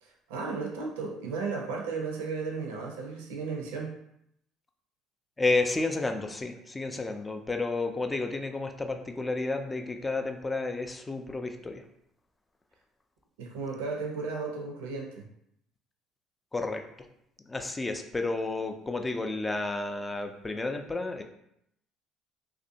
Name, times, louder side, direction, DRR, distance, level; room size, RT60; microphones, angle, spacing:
voice 1, 0.0-3.9 13.4-15.2, right 4 dB, 80° right, 1 dB, 0.4 m, -34 dB
voice 2, 5.4-11.8 16.5-16.8 17.5-21.2, left 3 dB, 20° left, 5 dB, 0.3 m, -31 dB
2.5 x 2.1 x 2.7 m, 0.75 s
hypercardioid pair, 65°, 0 cm